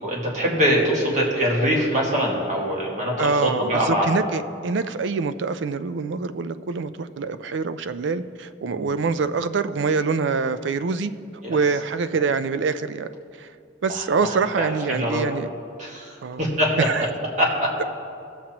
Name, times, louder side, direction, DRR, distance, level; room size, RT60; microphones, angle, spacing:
voice 1, 0.0-4.2 8.7-8.9 11.4-11.6 13.9-15.2 15.8-16.7 17.4-17.7, equal, 40° right, -3 dB, 1.7 m, -23 dB
voice 2, 3.2-11.1 11.5-13.1 13.4-13.5 13.8-15.5 16.2-16.4 16.9-17.1, right 4 dB, 70° right, 12 dB, 0.4 m, -25 dB
17.5 x 7.4 x 2.9 m, 2.4 s
head